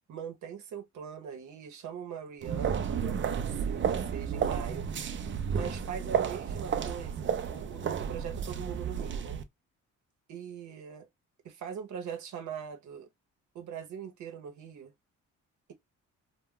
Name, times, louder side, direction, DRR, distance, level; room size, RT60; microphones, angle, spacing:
voice 1, 0.1-4.9 5.5-9.4 10.3-11.1 11.4-13.1 13.5-14.9, right 7 dB, 75° right, 0.8 m, -41 dB
sound 1, 2.4-9.4, right 7 dB, 40° right, 0.5 m, -32 dB
2.2 x 2.2 x 3.5 m
cardioid pair, 90°, 30 cm